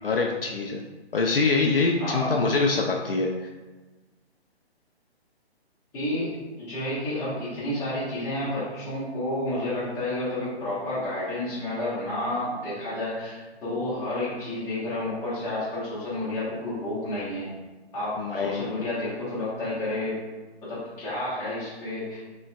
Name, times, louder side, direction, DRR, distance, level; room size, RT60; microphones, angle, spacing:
voice 1, 0.0-0.8 1.1-3.5 18.2-18.6, left 3 dB, 60° left, 1 dB, 0.5 m, -24 dB
voice 2, 2.0-2.4 5.9-17.5 17.9-20.1 20.6-22.2, left 1 dB, 10° left, -11 dB, 1.0 m, -30 dB
5.2 x 3.0 x 2.3 m, 1.2 s
figure-of-eight pair, 135°, 33 cm